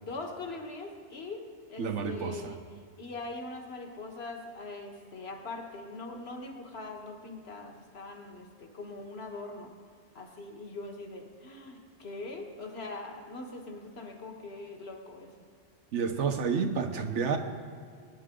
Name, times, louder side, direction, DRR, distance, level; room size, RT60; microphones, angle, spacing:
voice 1, 0.0-2.6 3.0-9.7 10.2-15.3, left 3 dB, 60° left, 3 dB, 1.7 m, -42 dB
voice 2, 1.8-2.5 15.9-17.4, right 5 dB, 80° right, 6 dB, 1.3 m, -30 dB
21.5 x 10.5 x 3.8 m, 2.1 s
omnidirectional pair, 1.2 m